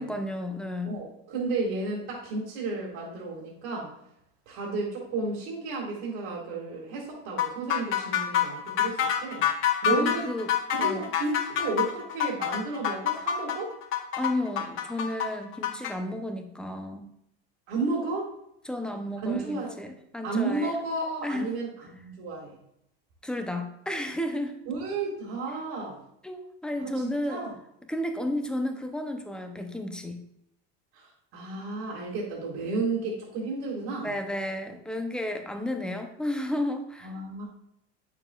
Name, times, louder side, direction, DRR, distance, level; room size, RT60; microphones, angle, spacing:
voice 1, 0.0-0.9 9.9-10.5 10.8-11.1 14.2-17.1 18.6-20.8 21.2-21.5 23.2-24.6 26.2-27.4 27.9-30.2 34.0-37.2, left 1 dB, 5° left, 5 dB, 0.5 m, -32 dB
voice 2, 0.8-3.9 4.5-9.5 9.8-10.3 10.7-13.7 17.7-18.3 19.2-19.7 20.2-22.6 24.7-26.0 26.8-27.5 30.9-34.1 37.0-37.5, right 3 dB, 60° right, -4 dB, 2.0 m, -32 dB
sound 1, 7.4-15.9, left 9 dB, 40° left, 0.9 m, -27 dB
8.7 x 6.7 x 2.3 m, 0.77 s
cardioid pair, 150°, 31 cm